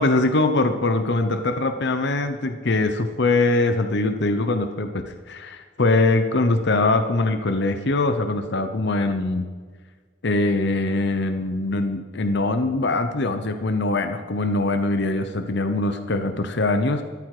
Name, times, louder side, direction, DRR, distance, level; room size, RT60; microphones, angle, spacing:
voice 1, 0.0-9.5 10.2-17.0, left 2 dB, 60° left, 8 dB, 0.9 m, -22 dB
14.5 x 13.5 x 4.9 m, 1.5 s
head